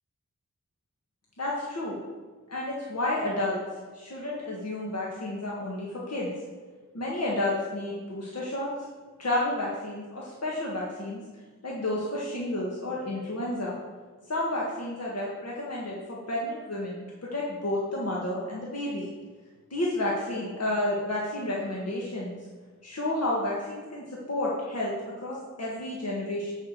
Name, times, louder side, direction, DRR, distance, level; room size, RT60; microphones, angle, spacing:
voice 1, 1.4-2.0 2.5-3.6 3.9-6.3 6.9-8.7 9.2-11.2 11.6-13.7 14.3-19.1 19.7-22.4 22.8-24.9 25.2-26.5, left 1 dB, 55° left, -5 dB, 1.7 m, -31 dB
10.5 x 4.8 x 6.7 m, 1.4 s
wide cardioid pair, 75°, 30 cm